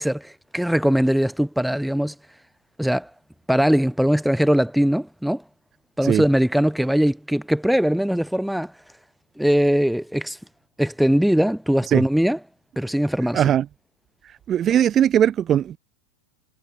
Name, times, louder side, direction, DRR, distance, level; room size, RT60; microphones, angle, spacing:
voice 1, 0.0-2.1 2.8-3.1 3.5-5.4 6.0-8.7 9.4-10.4 10.8-12.4 12.8-13.4, equal, ahead, 5.2 m, -21 dB
voice 2, 13.3-13.7 14.2-15.8, right 10 dB, 25° right, 4.5 m, -19 dB
figure-of-eight pair, 90°, 0 cm